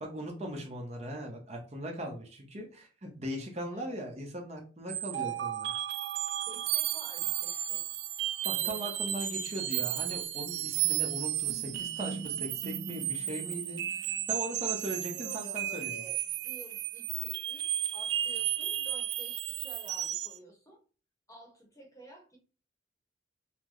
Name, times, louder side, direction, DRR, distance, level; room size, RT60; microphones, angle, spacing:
voice 1, 0.0-5.7 8.4-15.9, equal, 35° right, 1 dB, 0.8 m, -39 dB
voice 2, 3.7-4.1 5.0-5.4 6.3-8.0 8.4-8.9 15.1-20.8 21.3-22.4, equal, 15° left, 1 dB, 1.0 m, -52 dB
sound 1, 4.9-20.4, right 12 dB, 65° right, 0.4 m, -33 dB
5.6 x 2.1 x 3.1 m, 0.36 s
head